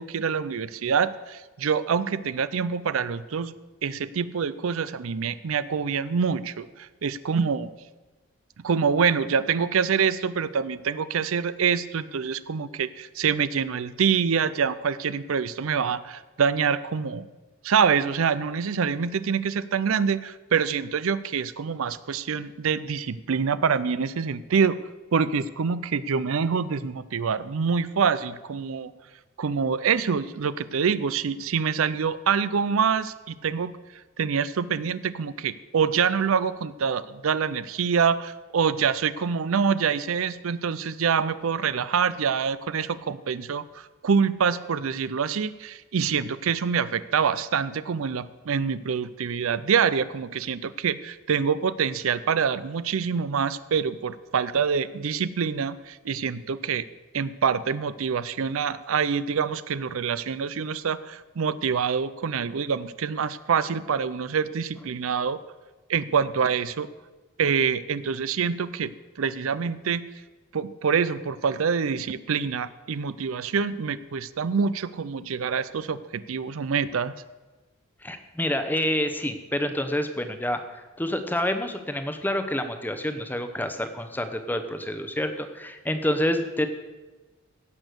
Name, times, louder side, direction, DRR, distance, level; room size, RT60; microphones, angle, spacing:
voice 1, 0.0-3.5 3.8-7.7 8.6-17.2 17.6-24.8 25.1-28.9 29.4-33.7 34.2-56.8 57.1-65.4 65.9-66.9 67.4-68.9 69.2-70.0 70.5-77.1, right 6 dB, 70° right, 16 dB, 0.5 m, -26 dB
voice 2, 78.0-86.7, left 1 dB, 10° left, 8 dB, 0.8 m, -28 dB
16.5 x 6.3 x 6.7 m, 1.2 s
head